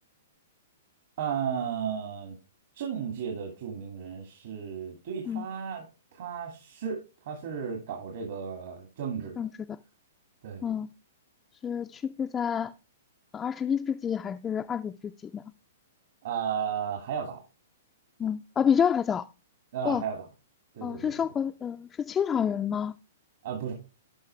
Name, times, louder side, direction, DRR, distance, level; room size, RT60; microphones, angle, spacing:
voice 1, 1.2-2.4 2.7-5.8 6.1-7.0 7.3-9.5 10.4-10.6 16.2-17.4 19.7-20.3 20.7-21.2 23.4-23.7, right 7 dB, 65° right, 2.2 m, -34 dB
voice 2, 11.6-12.7 13.3-15.4 18.2-19.2 19.8-20.0 20.8-22.9, left 8 dB, 15° left, 0.3 m, -28 dB
11.5 x 5.5 x 3.2 m
hypercardioid pair, 145°, 0 cm